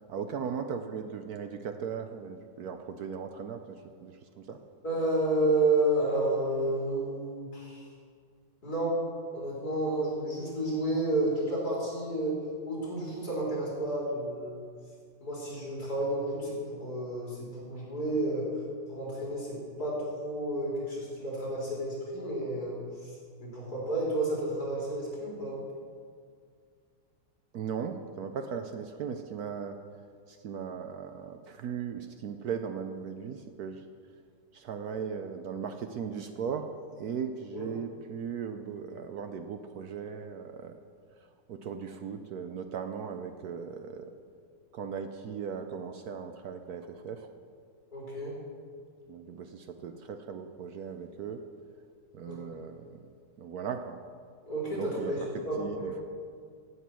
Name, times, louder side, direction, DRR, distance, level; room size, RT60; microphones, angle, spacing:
voice 1, 0.1-4.6 27.5-29.8 30.3-33.8 34.5-36.7 37.0-40.8 41.5-44.1 44.7-47.3 49.1-51.4 52.1-53.1 53.4-54.0 54.7-55.3 55.6-55.9, right 6 dB, 80° right, 7 dB, 0.8 m, -38 dB
voice 2, 4.8-7.8 8.6-9.0 9.3-14.6 15.2-18.5 18.9-23.1 23.4-25.6 37.5-37.7 47.9-48.3 52.3-52.4 54.5-55.9, right 1 dB, 45° left, -5 dB, 4.5 m, -31 dB
15.5 x 8.3 x 6.1 m, 2.1 s
omnidirectional pair, 2.4 m